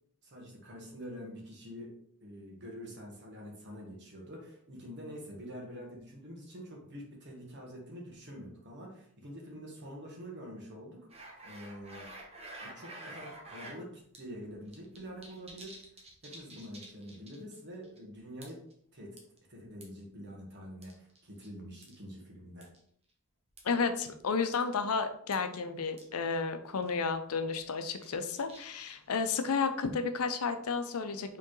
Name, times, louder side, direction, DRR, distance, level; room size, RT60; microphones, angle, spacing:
voice 1, 0.2-12.1 12.6-15.8 16.2-18.6 18.9-19.2 19.5-22.7, equal, 55° right, -1 dB, 1.4 m, -46 dB
sound 1, 11.1-13.8 14.1-14.2 14.5-17.5 17.8-18.0 18.4-18.7 19.2-20.0 20.8-21.5 21.8-22.0 22.6-22.8 23.6-23.7 24.1-24.2 24.5-24.7 24.9-25.0 25.3-25.4 26.0-26.1 26.3-26.4 26.8-27.0 27.5-29.1, right 2 dB, 30° right, 1.0 m, -49 dB
voice 2, 23.6-31.4, left 5 dB, 85° left, 8 dB, 0.6 m, -32 dB
4.4 x 3.6 x 3.1 m, 0.64 s
head